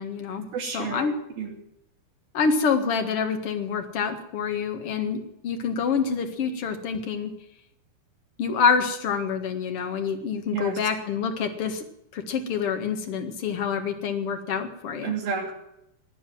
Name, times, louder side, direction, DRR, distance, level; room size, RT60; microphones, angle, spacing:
voice 1, 0.0-0.5 0.7-1.1 2.3-7.3 8.4-11.8 12.1-15.1, left 6 dB, 45° left, 5 dB, 2.2 m, -27 dB
voice 2, 0.5-1.5 10.5-10.8 15.0-15.5, right 6 dB, 70° right, 2 dB, 4.5 m, -31 dB
17.5 x 10.0 x 7.7 m, 0.83 s
omnidirectional pair, 4.4 m